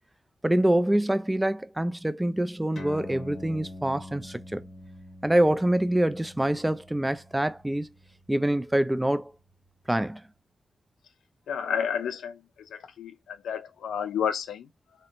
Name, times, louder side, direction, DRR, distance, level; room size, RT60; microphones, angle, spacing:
voice 1, 0.4-4.7 5.2-7.9 8.3-9.3 9.9-10.2, right 1 dB, 10° right, 0.3 m, -25 dB
sound 1, 2.7-9.7, left 1 dB, 60° left, 0.9 m, -45 dB
voice 2, 11.5-14.7, left 7 dB, 90° left, 0.3 m, -31 dB
2.7 x 2.1 x 2.5 m
cardioid pair, 50°, 0 cm